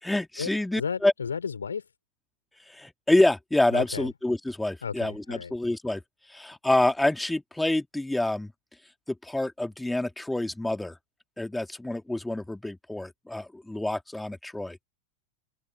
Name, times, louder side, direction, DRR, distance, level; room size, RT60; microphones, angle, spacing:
voice 1, 0.0-1.1 2.7-6.0 6.3-8.5 9.1-11.0 11.4-14.8, left 1 dB, 5° left, 2.9 m, -27 dB
voice 2, 0.7-1.9 3.7-4.1 4.8-5.5, left 6 dB, 70° left, 3.7 m, -33 dB
open air
figure-of-eight pair, 90°, 0 cm